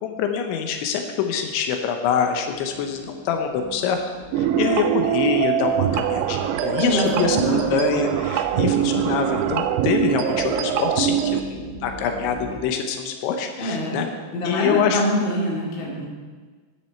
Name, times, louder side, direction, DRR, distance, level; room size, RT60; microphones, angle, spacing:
voice 1, 0.0-4.0 4.4-14.1 14.5-15.0, left 7 dB, 90° left, 5 dB, 3.3 m, -25 dB
sound 1, 2.5-12.6, left 1 dB, 40° right, 1.3 m, -38 dB
sound 2, 4.3-11.4, right 11 dB, 80° right, 2.5 m, -23 dB
voice 2, 6.8-7.9 8.5-9.0 13.6-14.0 14.3-16.1, equal, 30° left, -4 dB, 2.8 m, -25 dB
12.5 x 10.0 x 4.4 m, 1.4 s
omnidirectional pair, 5.2 m